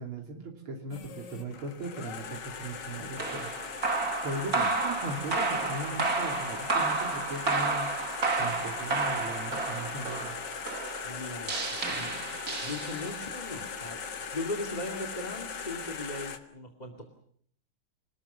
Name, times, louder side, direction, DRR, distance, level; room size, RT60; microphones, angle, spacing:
voice 1, 0.0-3.5 4.2-7.9 8.4-10.4, right 2 dB, 85° right, 2 dB, 3.7 m, -38 dB
sound 1, 0.9-16.4, left 6 dB, 60° left, 2.0 m, -39 dB
sound 2, 3.2-13.3, right 3 dB, 45° right, 2.8 m, -31 dB
voice 2, 11.0-14.0 14.3-17.1, left 2 dB, 20° left, 6 dB, 2.3 m, -39 dB
28.0 x 19.5 x 7.1 m, 0.63 s
omnidirectional pair, 2.3 m